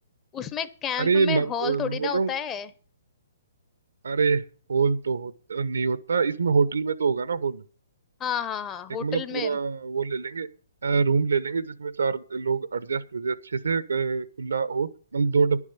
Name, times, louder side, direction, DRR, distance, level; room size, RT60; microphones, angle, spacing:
voice 1, 0.3-2.7 8.2-9.6, left 8 dB, 20° left, 0.8 m, -31 dB
voice 2, 1.0-2.3 4.0-7.6 9.0-10.5 10.8-15.6, right 5 dB, 90° right, 1.0 m, -25 dB
11.0 x 7.3 x 8.1 m
hypercardioid pair, 150°, 0 cm